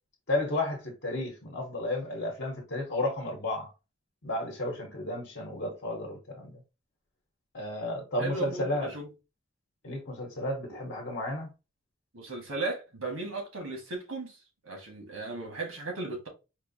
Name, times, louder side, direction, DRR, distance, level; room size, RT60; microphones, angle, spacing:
voice 1, 0.3-3.7 4.2-6.6 7.5-8.9 9.8-11.5, left 1 dB, 55° left, 0.9 m, -32 dB
voice 2, 8.2-9.1 12.1-14.4 14.6-16.3, right 3 dB, 80° right, 1.4 m, -36 dB
4.5 x 2.6 x 2.6 m
head